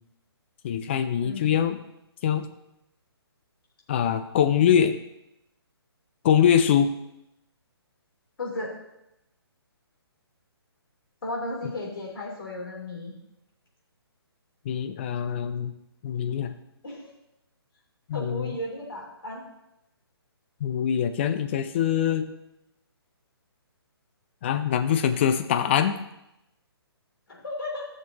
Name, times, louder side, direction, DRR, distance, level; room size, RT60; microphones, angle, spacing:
voice 1, 0.6-1.8 2.2-2.5 3.9-5.0 6.2-6.9 14.6-15.7 16.0-16.5 18.1-18.6 20.6-22.3 24.4-26.0, left 9 dB, 25° left, 9 dB, 0.5 m, -23 dB
voice 2, 8.4-8.7 11.2-13.1 16.8-17.1 18.1-19.4 27.3-27.9, left 1 dB, 60° left, -3 dB, 3.5 m, -34 dB
13.5 x 6.7 x 2.9 m, 0.87 s
figure-of-eight pair, 135°, 13 cm